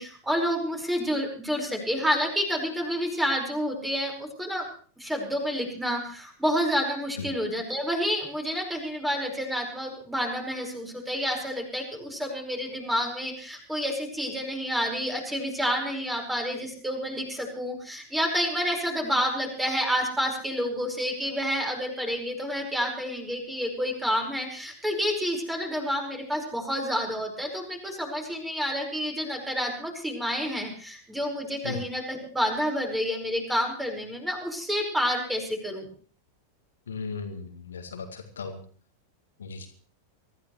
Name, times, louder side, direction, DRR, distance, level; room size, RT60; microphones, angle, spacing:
voice 1, 0.0-4.7 5.0-35.9, equal, 5° right, 2 dB, 5.1 m, -29 dB
voice 2, 36.9-38.6 39.4-39.7, left 5 dB, 70° left, 5 dB, 2.5 m, -36 dB
24.5 x 14.5 x 3.2 m, 0.41 s
figure-of-eight pair, 90°, 0 cm